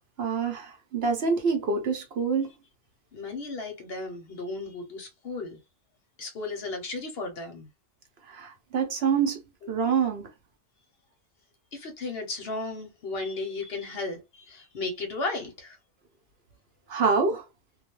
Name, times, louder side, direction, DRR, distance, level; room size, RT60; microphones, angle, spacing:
voice 1, 0.2-2.5 8.3-10.3 16.9-17.4, right 5 dB, 60° right, 0.8 m, -26 dB
voice 2, 3.1-5.6 6.2-7.7 11.7-15.8, left 3 dB, 60° left, 0.8 m, -35 dB
2.3 x 2.2 x 2.9 m
omnidirectional pair, 1.3 m